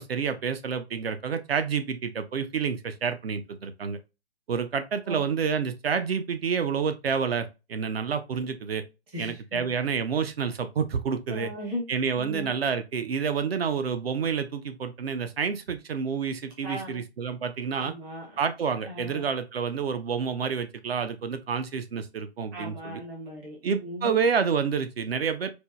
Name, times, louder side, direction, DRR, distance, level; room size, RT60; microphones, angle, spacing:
voice 1, 0.0-4.0 4.5-8.8 9.2-11.5 11.9-17.9 18.4-23.0 23.6-25.5, right 6 dB, 65° right, 0.6 m, -29 dB
voice 2, 9.1-9.7 11.3-11.8 12.1-12.5 16.6-17.0 17.7-18.4 18.8-19.3 22.5-24.1, equal, 10° right, 0.5 m, -37 dB
4.3 x 2.0 x 2.3 m
figure-of-eight pair, 140°, 33 cm